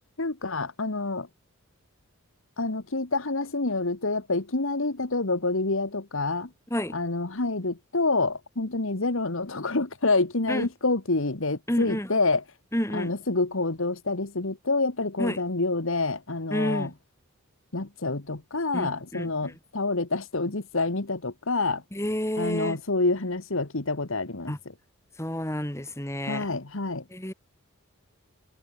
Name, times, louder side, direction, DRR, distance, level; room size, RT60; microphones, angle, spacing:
voice 1, 0.2-1.3 2.6-6.5 6.9-12.4 12.9-16.9 17.7-21.8 22.4-24.7 26.2-27.0, left 3 dB, 60° left, 1.5 m, -27 dB
voice 2, 11.7-12.1 12.7-13.1 15.2-15.4 16.5-16.9 18.7-19.5 21.9-22.8 24.5-24.6 25.2-26.5 27.1-27.3, equal, 10° left, 3.5 m, -29 dB
head